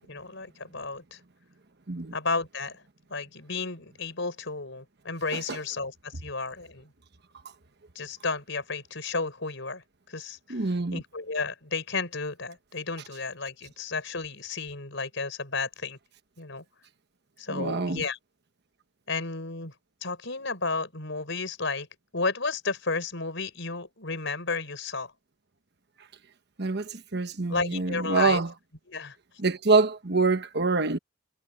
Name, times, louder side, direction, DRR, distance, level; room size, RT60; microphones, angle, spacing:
voice 1, 0.1-1.2 2.1-2.8 3.1-6.9 7.9-16.0 16.4-16.6 17.4-18.2 19.1-19.7 20.0-21.9 22.1-25.1 27.5-28.4 28.9-29.2, left 4 dB, 65° left, 5.9 m, -32 dB
voice 2, 10.5-11.0 17.5-18.0 26.6-28.5 29.4-31.0, right 3 dB, 55° right, 1.2 m, -25 dB
head